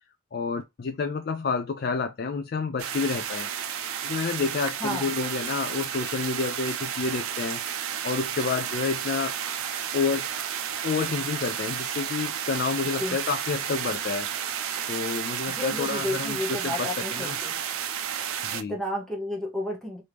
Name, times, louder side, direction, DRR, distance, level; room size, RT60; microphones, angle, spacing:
voice 1, 0.3-10.3 10.8-14.3 14.9-17.4 18.4-18.8, left 4 dB, 50° left, 0.3 m, -29 dB
sound 1, 2.8-18.6, right 9 dB, 90° right, 0.4 m, -32 dB
voice 2, 4.8-5.1 13.0-13.2 15.5-17.6 18.7-20.0, left 1 dB, 5° left, 0.9 m, -32 dB
3.1 x 2.7 x 3.4 m
head